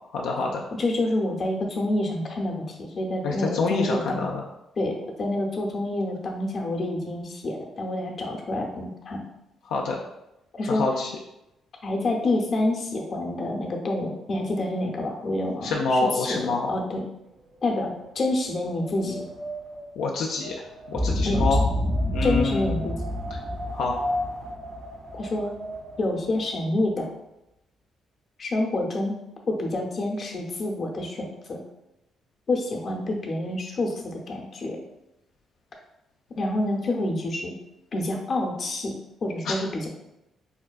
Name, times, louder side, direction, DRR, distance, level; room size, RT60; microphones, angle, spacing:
voice 1, 0.1-0.6 3.2-4.4 9.7-10.0 10.7-11.1 15.6-16.7 20.0-20.6 20.9-21.6 22.1-22.7 23.7-23.9 39.4-39.6, left 3 dB, 85° left, -1 dB, 0.3 m, -26 dB
voice 2, 0.8-4.2 4.8-9.2 10.5-10.9 11.8-16.4 16.7-17.0 17.6-19.2 21.2-21.4 22.2-23.0 25.1-25.5 26.0-27.1 28.4-29.2 29.5-31.6 32.5-34.8 36.4-37.6 37.9-38.9 39.2-39.9, left 2 dB, 45° left, 0 dB, 0.7 m, -27 dB
Wind, 17.3-26.5, equal, 50° right, 0.6 m, -37 dB
Boom, 20.9-25.2, left 1 dB, ahead, 0.4 m, -27 dB
4.3 x 2.3 x 2.3 m, 0.90 s
cardioid pair, 90°, 0 cm